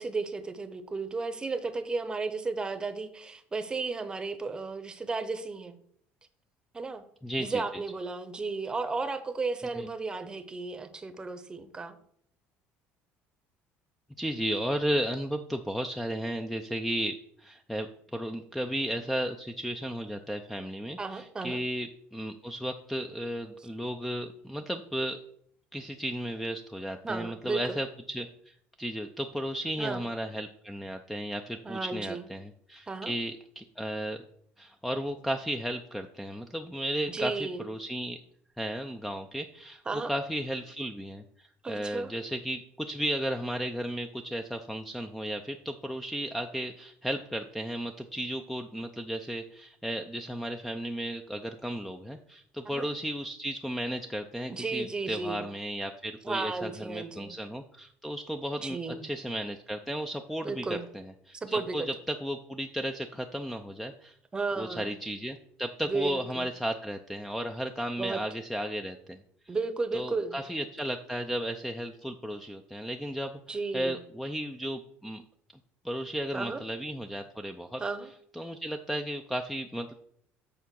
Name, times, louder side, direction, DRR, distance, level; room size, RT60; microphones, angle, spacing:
voice 1, 0.0-5.8 6.7-7.0 7.4-12.0 21.0-21.6 27.0-27.8 29.8-30.0 31.6-32.3 32.9-33.1 37.1-37.7 39.9-40.1 41.6-42.1 52.6-52.9 54.5-55.4 56.2-57.4 58.6-59.1 60.4-60.9 61.4-61.9 64.3-64.9 65.8-66.5 68.0-68.2 69.5-70.4 73.5-74.0 76.3-76.6 77.8-78.1, right 4 dB, 15° right, 10 dB, 0.8 m, -34 dB
voice 2, 7.2-7.6 9.8-9.9 14.2-25.2 25.7-34.2 34.6-38.2 38.6-39.8 40.1-61.8 62.1-64.2 64.6-69.2 69.5-69.6 69.9-75.2 75.8-77.8 78.3-79.9, equal, ahead, 6 dB, 0.4 m, -34 dB
8.2 x 3.6 x 6.2 m, 0.66 s
cardioid pair, 135°, 5 cm